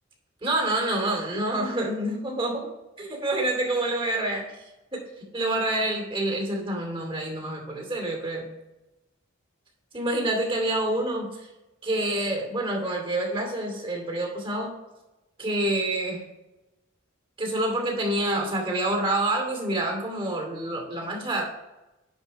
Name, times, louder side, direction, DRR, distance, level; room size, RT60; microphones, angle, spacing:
voice 1, 0.4-2.7 3.0-4.6 4.9-8.5 9.9-11.5 11.8-14.8 15.4-16.2 17.4-21.5, right 1 dB, 30° right, 0 dB, 2.5 m, -27 dB
10.5 x 4.5 x 4.4 m, 1.0 s
head